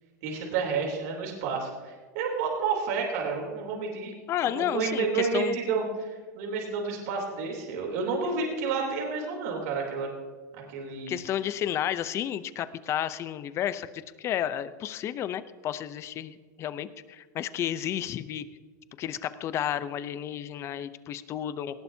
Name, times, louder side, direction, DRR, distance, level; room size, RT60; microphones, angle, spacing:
voice 1, 0.2-4.1 4.4-10.1 10.5-11.2, right 5 dB, 60° right, 0 dB, 3.3 m, -30 dB
voice 2, 4.3-5.6 11.1-18.4 19.0-21.8, left 10 dB, 30° left, 14 dB, 0.6 m, -32 dB
18.5 x 17.5 x 2.8 m, 1.5 s
supercardioid pair, 140°, 9 cm